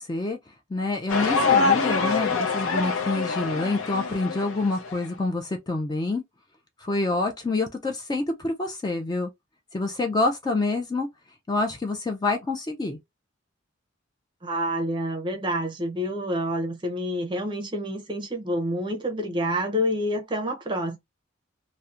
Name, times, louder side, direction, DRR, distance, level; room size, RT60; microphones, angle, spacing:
voice 1, 0.0-6.2 6.8-9.3 9.7-11.1 11.5-13.0, left 2 dB, 20° left, 0.3 m, -27 dB
sound 1, 1.1-5.1, left 4 dB, 90° left, 0.5 m, -25 dB
voice 2, 14.4-21.0, equal, 25° right, 0.6 m, -28 dB
2.7 x 2.1 x 2.4 m
head